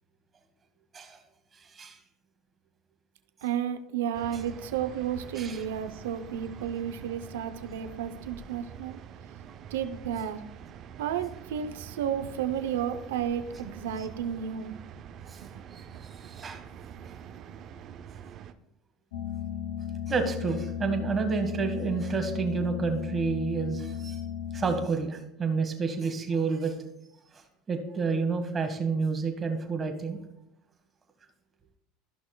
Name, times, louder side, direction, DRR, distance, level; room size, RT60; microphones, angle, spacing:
voice 1, 1.5-2.0 5.4-5.6 14.0-14.1 15.3-15.5 15.7-16.6 17.0-17.1 20.1-24.3 24.5-26.8 27.3-30.2, right 4 dB, 25° right, 5 dB, 1.5 m, -30 dB
voice 2, 3.4-9.0 9.7-10.4 11.0-14.7 15.5-15.6, right 9 dB, 85° right, 8 dB, 0.7 m, -32 dB
sound 1, 4.1-18.5, right 8 dB, 45° right, 0.6 m, -46 dB
sound 2, 19.1-24.9, left 9 dB, 75° left, 0.7 m, -35 dB
14.0 x 5.8 x 2.3 m, 0.82 s
supercardioid pair, 100°, 0 cm